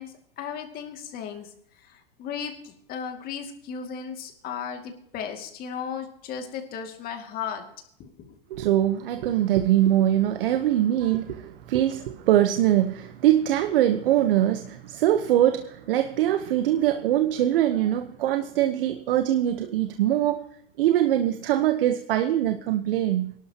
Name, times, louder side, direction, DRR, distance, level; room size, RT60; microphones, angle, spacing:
voice 1, 0.0-1.5 1.9-7.6 8.0-8.4, left 7 dB, 30° left, 4 dB, 2.3 m, -35 dB
voice 2, 8.5-20.4 20.8-23.3, right 12 dB, 70° right, 8 dB, 1.0 m, -23 dB
23.5 x 12.0 x 2.9 m, 0.68 s
supercardioid pair, 145°, 29 cm